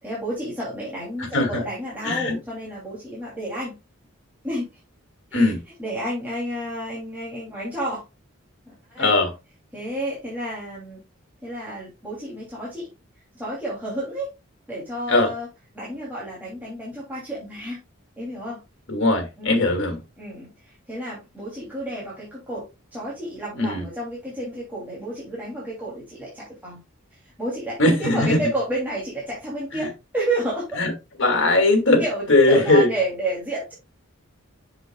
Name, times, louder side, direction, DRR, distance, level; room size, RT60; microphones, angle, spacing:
voice 1, 0.0-3.8 4.4-4.8 5.3-5.5 5.8-8.0 8.7-9.1 9.7-11.0 11.4-12.9 13.3-14.3 14.7-15.5 15.7-17.8 18.2-18.6 19.4-19.8 20.2-26.8 27.1-30.8 32.0-33.7, right 1 dB, 10° right, 2.8 m, -31 dB
voice 2, 1.2-1.6 2.0-2.4 5.3-5.6 9.0-9.3 15.1-15.3 18.9-20.0 23.6-23.8 27.8-28.4 30.8-30.9 31.2-32.0 32.3-32.9, left 2 dB, 60° left, 2.4 m, -19 dB
8.1 x 6.7 x 2.3 m
head